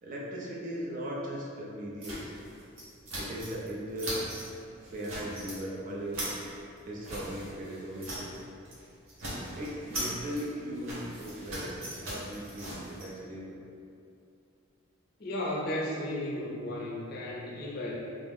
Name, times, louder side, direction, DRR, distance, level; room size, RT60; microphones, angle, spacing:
voice 1, 0.0-2.2 3.1-4.2 4.9-6.2 6.8-8.3 9.5-13.6, equal, 40° right, -3 dB, 0.4 m, -38 dB
sound 1, 2.0-3.7 3.9-4.5 4.8-5.6 5.9-8.4 8.6-8.8 9.1-13.0, right 1 dB, 70° right, 0.8 m, -39 dB
voice 2, 15.2-18.0, left 1 dB, 45° left, -4 dB, 0.4 m, -34 dB
2.4 x 2.0 x 3.4 m, 2.5 s
head